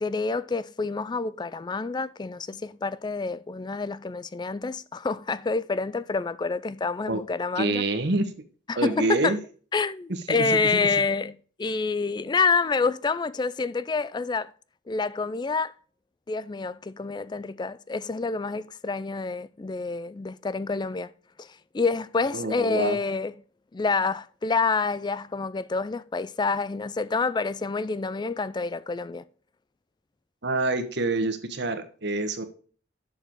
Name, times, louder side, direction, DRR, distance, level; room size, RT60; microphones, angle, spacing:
voice 1, 0.0-7.8 8.7-9.4 9.7-11.3 11.6-14.5 14.9-15.7 16.3-21.1 21.4-21.5 21.7-23.3 23.7-29.2, left 4 dB, 20° left, 0.3 m, -27 dB
voice 2, 7.6-8.3 8.8-9.4 10.3-11.0 22.3-23.0 30.4-32.4, right 2 dB, 60° right, 1.2 m, -27 dB
7.5 x 6.7 x 4.5 m
head